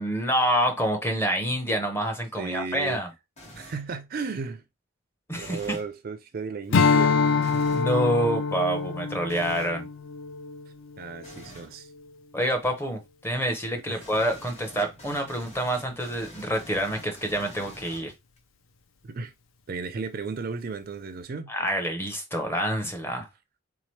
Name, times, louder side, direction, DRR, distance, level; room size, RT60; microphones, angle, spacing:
voice 1, 0.0-3.1 5.3-5.8 7.3-9.9 12.3-18.1 21.5-23.3, equal, 10° left, 0.7 m, -27 dB
voice 2, 2.4-3.0 3.6-4.6 5.4-7.2 11.0-11.9 13.9-14.0 19.0-19.3 19.7-21.5, right 4 dB, 45° right, 0.4 m, -34 dB
sound 1, 3.4-3.9 5.4-5.9 7.4-7.9 9.3-9.8 11.2-11.7 14.0-18.4, left 1 dB, 30° left, 1.1 m, -47 dB
Strum, 6.7-11.4, left 5 dB, 75° left, 0.5 m, -25 dB
3.7 x 2.9 x 3.1 m
head